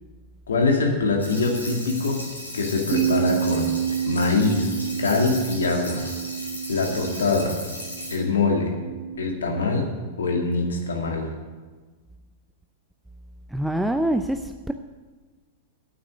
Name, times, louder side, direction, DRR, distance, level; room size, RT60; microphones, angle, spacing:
voice 1, 0.5-2.2 2.5-3.7 4.0-4.7 5.0-6.0 6.7-7.6 8.1-8.7 9.2-9.9 10.2-11.3, left 3 dB, 75° left, 2 dB, 2.2 m, -23 dB
sound 1, 1.2-8.1, left 1 dB, 90° left, 4.2 m, -36 dB
Bass guitar, 2.9-9.2, right 9 dB, 40° right, 1.0 m, -29 dB
voice 2, 13.5-14.4 14.7-14.8, right 1 dB, 5° right, 7 dB, 0.5 m, -24 dB
9.0 x 8.7 x 8.7 m, 1.4 s
figure-of-eight pair, 100°, 0 cm